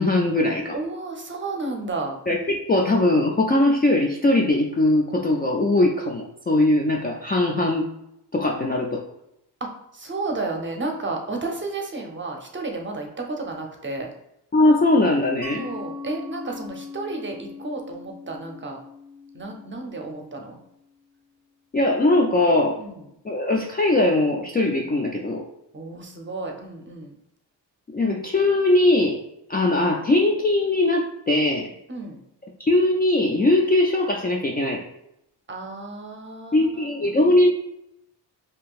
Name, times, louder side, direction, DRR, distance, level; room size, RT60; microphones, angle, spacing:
voice 1, 0.0-0.8 2.3-7.9 8.3-9.0 14.5-15.6 21.7-22.8 23.2-25.4 27.9-29.2 29.5-31.7 32.6-34.8 36.5-37.5, left 2 dB, 25° left, -1 dB, 0.3 m, -20 dB
voice 2, 0.7-2.2 9.6-9.7 9.9-14.1 15.5-18.8 19.3-20.6 22.8-23.0 25.7-27.1 31.9-32.2 35.5-37.3, right 3 dB, 25° right, 2 dB, 0.7 m, -32 dB
Mallet percussion, 15.4-20.8, left 4 dB, 75° left, 1.2 m, -40 dB
3.6 x 2.7 x 2.4 m, 0.81 s
cardioid pair, 80°, 43 cm